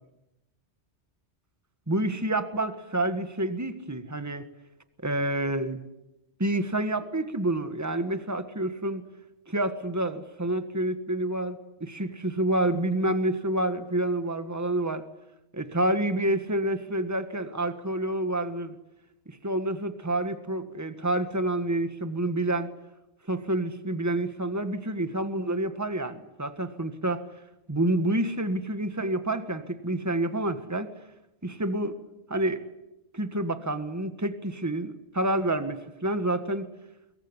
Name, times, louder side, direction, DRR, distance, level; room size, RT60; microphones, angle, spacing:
voice 1, 1.9-4.5 5.0-5.8 6.4-9.0 9.5-15.0 15.5-18.8 19.3-22.7 23.3-27.2 27.7-30.9 31.4-32.0 32.3-32.7 33.1-36.7, right 1 dB, 15° right, 10 dB, 1.7 m, -28 dB
25.0 x 22.5 x 9.9 m, 0.91 s
omnidirectional pair, 1.1 m